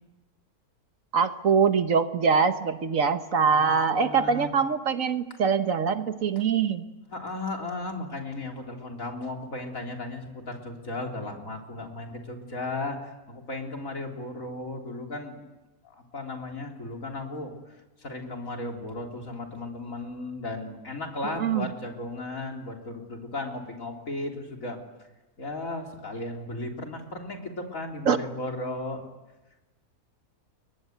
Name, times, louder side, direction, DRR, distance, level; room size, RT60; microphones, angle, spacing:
voice 1, 1.1-6.8 21.4-21.7 28.1-28.2, right 6 dB, 60° right, 9 dB, 1.4 m, -23 dB
voice 2, 3.5-4.5 7.1-15.4 15.8-24.8 25.4-29.1, left 2 dB, 55° left, 1 dB, 3.9 m, -35 dB
29.5 x 22.5 x 8.0 m, 1.1 s
omnidirectional pair, 1.6 m